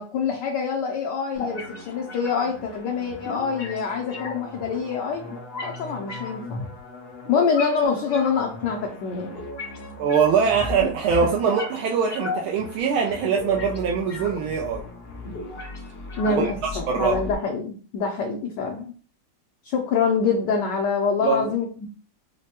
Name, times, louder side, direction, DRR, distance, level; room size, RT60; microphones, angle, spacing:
voice 1, 0.0-5.2 5.6-6.6 7.3-9.3 11.2-11.3 16.2-18.9 19.6-21.9, left 5 dB, 75° left, 0 dB, 1.0 m, -25 dB
sound 1, 1.3-17.3, left 3 dB, 55° left, 0.6 m, -36 dB
voice 2, 10.0-14.8 16.3-16.5 16.9-17.2 21.2-21.5, right 6 dB, 80° right, -1 dB, 1.3 m, -22 dB
5.1 x 2.1 x 2.8 m, 0.41 s
omnidirectional pair, 2.3 m